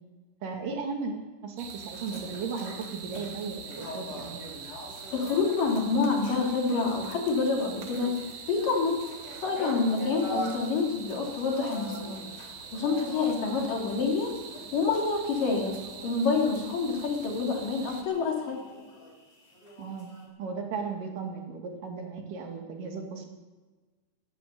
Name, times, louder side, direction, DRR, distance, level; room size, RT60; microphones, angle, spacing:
voice 1, 0.4-4.4 19.8-20.1 20.4-23.3, right 4 dB, 80° right, 3 dB, 3.7 m, -36 dB
sound 1, 1.6-18.0, right 6 dB, 65° right, 2.7 m, -44 dB
sound 2, 1.7-20.3, equal, 40° left, 6.2 m, -43 dB
voice 2, 5.1-8.2 8.5-9.0 9.4-14.3 14.7-15.8 16.0-18.6, left 4 dB, 85° left, 0 dB, 4.7 m, -27 dB
15.5 x 11.0 x 8.2 m, 1.3 s
omnidirectional pair, 3.7 m